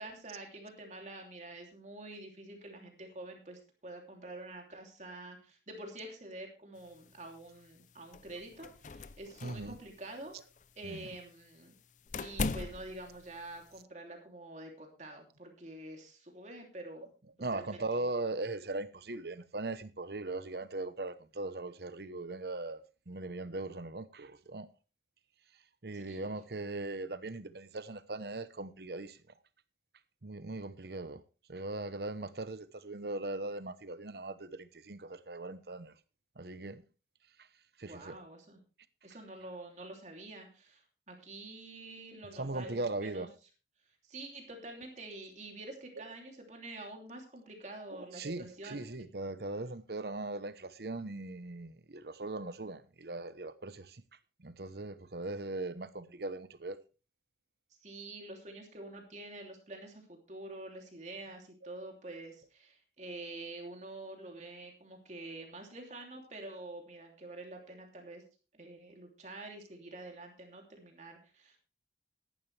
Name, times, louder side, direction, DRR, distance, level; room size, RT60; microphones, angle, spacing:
voice 1, 0.0-10.3 10.7-11.7 12.2-17.1 17.5-17.8 25.9-26.4 37.9-38.6 39.0-43.3 44.0-48.8 57.8-68.2 68.5-71.6, right 2 dB, 40° right, 3.0 m, -47 dB
sound 1, 6.8-13.8, left 4 dB, 45° left, 0.6 m, -42 dB
voice 2, 9.4-9.8 10.8-11.1 17.4-24.7 25.8-29.2 30.2-31.2 31.5-35.9 36.4-36.8 37.8-38.2 42.3-43.3 47.9-54.0 54.4-56.8, right 2 dB, 65° right, 1.0 m, -39 dB
15.0 x 11.5 x 3.4 m
head